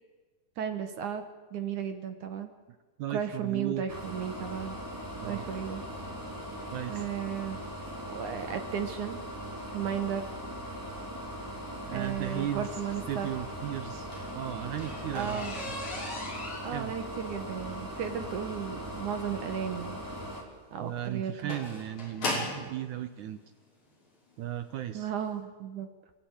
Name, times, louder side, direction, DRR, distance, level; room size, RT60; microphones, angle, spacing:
voice 1, 0.6-1.2 1.5-2.5 3.1-4.8 5.2-5.8 6.9-7.6 8.1-9.2 9.7-10.3 11.9-13.3 15.1-15.6 16.6-20.0 20.7-21.6 24.9-25.9, right 8 dB, 60° right, 8 dB, 2.4 m, -34 dB
voice 2, 3.0-3.8 5.2-5.4 6.7-7.1 11.9-12.7 13.1-15.4 16.7-16.9 20.8-23.4 24.4-25.1, right 12 dB, 80° right, 9 dB, 1.7 m, -36 dB
sound 1, 3.9-20.4, equal, 5° right, 3.6 m, -40 dB
sound 2, 13.8-22.7 23.6-23.7 24.3-24.5 24.8-24.9 25.2-25.3, left 2 dB, 45° left, 7.3 m, -38 dB
28.5 x 15.0 x 9.6 m, 1.3 s
omnidirectional pair, 4.7 m